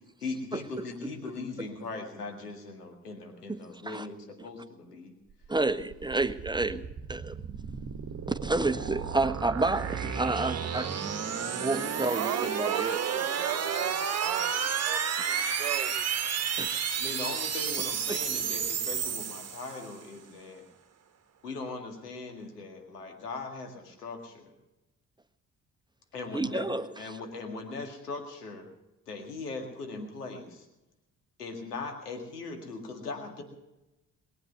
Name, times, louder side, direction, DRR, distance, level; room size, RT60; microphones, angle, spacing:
voice 1, 0.2-5.1 17.0-20.7 21.4-24.5 26.1-26.7 27.0-28.7 29.1-30.7 31.4-33.4, left 3 dB, 80° left, 4 dB, 2.1 m, -39 dB
voice 2, 3.5-4.1 5.5-6.8 7.1-7.4 8.3-11.1 11.6-13.0 16.6-17.0 26.3-26.9, right 2 dB, 10° right, 11 dB, 0.9 m, -30 dB
sound 1, 5.5-20.0, right 7 dB, 35° right, 1.4 m, -32 dB
voice 3, 12.1-15.9, right 12 dB, 75° right, 11 dB, 1.1 m, -37 dB
21.5 x 8.6 x 7.8 m, 0.96 s
figure-of-eight pair, 45°, 46 cm